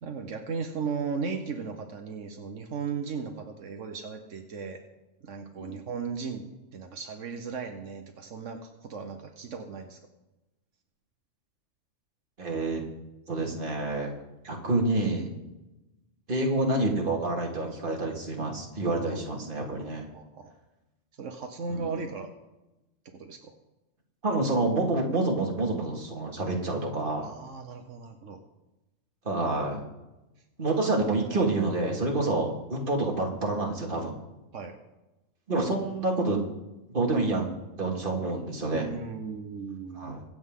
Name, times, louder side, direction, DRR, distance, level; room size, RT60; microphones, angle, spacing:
voice 1, 0.0-4.8 5.2-10.0 19.0-19.2 19.8-20.5 21.2-22.3 23.1-23.5 27.2-28.4 34.5-34.7 38.7-40.2, right 5 dB, 80° right, 5 dB, 1.4 m, -36 dB
voice 2, 12.4-12.8 13.3-14.1 14.4-15.3 16.3-20.1 21.7-22.0 24.2-27.3 29.3-29.8 30.6-34.2 35.5-36.4 36.9-37.5 37.8-38.9 40.0-40.2, right 2 dB, 45° right, 0 dB, 2.3 m, -28 dB
23.5 x 7.9 x 3.8 m, 1.0 s
omnidirectional pair, 1.3 m